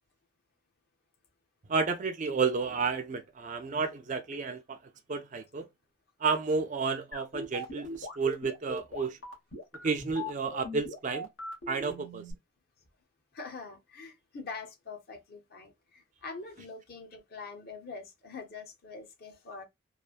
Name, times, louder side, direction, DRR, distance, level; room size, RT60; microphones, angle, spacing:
voice 1, 1.7-4.8 5.1-5.7 6.2-9.2 9.8-11.3 11.7-12.2, right 4 dB, 35° right, 0.4 m, -31 dB
sound 1, 7.1-12.3, left 1 dB, 80° left, 1.3 m, -40 dB
voice 2, 13.3-19.6, left 4 dB, 45° left, 0.8 m, -44 dB
3.2 x 2.1 x 2.3 m
head